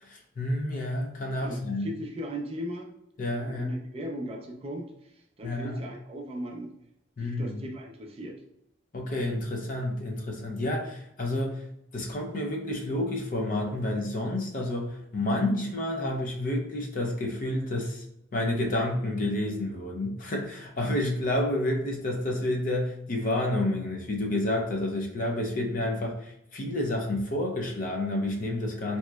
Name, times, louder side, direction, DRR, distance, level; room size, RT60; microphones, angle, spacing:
voice 1, 0.0-1.9 3.2-3.8 5.4-5.8 7.2-7.6 8.9-11.6 11.9-18.0 18.3-29.0, left 1 dB, 45° left, 1 dB, 0.5 m, -29 dB
voice 2, 1.4-2.9 3.5-4.9 5.4-6.7 7.2-8.4, equal, 30° right, 2 dB, 0.4 m, -37 dB
3.1 x 2.9 x 2.2 m, 0.78 s
head